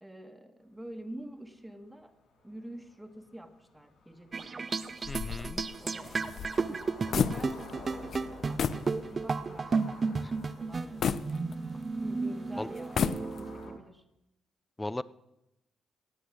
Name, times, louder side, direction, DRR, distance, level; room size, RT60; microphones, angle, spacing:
voice 1, 0.0-2.1 2.4-4.7 5.8-6.8 7.2-10.2 10.6-11.4 12.0-14.0, right 1 dB, 5° right, 7 dB, 1.5 m, -47 dB
sound 1, 0.7-0.8 1.2-1.3 1.5-13.7, left 3 dB, 75° left, 6.2 m, -52 dB
sound 2, 4.3-13.8, right 4 dB, 35° right, 0.7 m, -33 dB
sound 3, 5.0-7.8 8.1-8.2 8.6-8.9 9.4-9.5 11.0-12.0 12.8-13.6, left 7 dB, 55° left, 0.6 m, -32 dB
voice 2, 5.1-5.6 10.2-10.3 12.6-12.7 14.8-15.0, left 1 dB, 10° left, 18 dB, 0.5 m, -36 dB
17.0 x 8.6 x 6.3 m, 0.88 s
cardioid pair, 90°, 0 cm